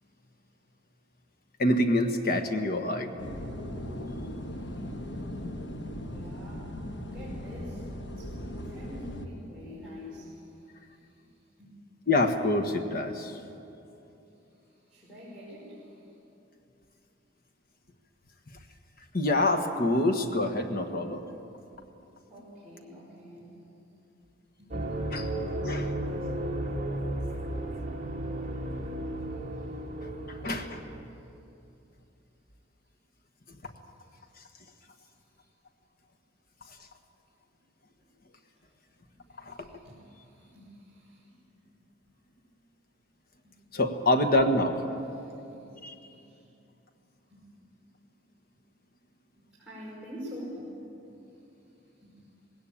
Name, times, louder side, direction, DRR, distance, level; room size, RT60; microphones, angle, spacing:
voice 1, 1.6-3.1 12.1-13.3 19.1-21.2 25.1-25.3 25.6-25.9 30.3-30.8 39.4-39.7 43.7-44.8 45.8-45.9, left 1 dB, 50° left, 6 dB, 1.4 m, -26 dB
sound 1, 3.2-9.3, left 1 dB, 65° left, 1.4 m, -38 dB
voice 2, 4.0-4.8 5.0-5.1 6.1-11.2 11.6-11.7 14.6-16.1 22.3-23.5 24.6-24.7 25.1-25.8 34.1-34.2 38.0-38.1 38.6-38.7 39.3-41.3 45.1-45.7 46.0-46.5 47.3-47.4 49.5-50.7 52.0-52.3, equal, 5° right, -10 dB, 5.4 m, -47 dB
sound 2, 24.7-31.0, right 1 dB, 40° right, 1.9 m, -34 dB
20.0 x 17.5 x 8.8 m, 2.8 s
head